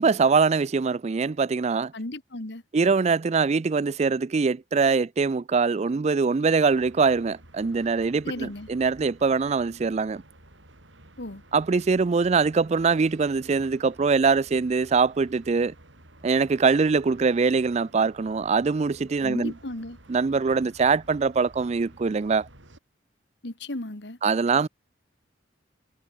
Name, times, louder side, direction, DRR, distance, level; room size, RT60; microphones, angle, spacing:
voice 1, 0.0-1.9 2.7-10.2 11.5-15.7 16.2-19.5 20.1-22.5 24.2-24.7, right 4 dB, 35° right, 0.4 m, -23 dB
voice 2, 1.9-2.6 8.2-8.7 11.2-11.4 19.2-20.0 23.4-24.2, left 1 dB, 65° left, 2.0 m, -35 dB
sound 1, 6.7-22.8, right 1 dB, 85° right, 7.1 m, -52 dB
head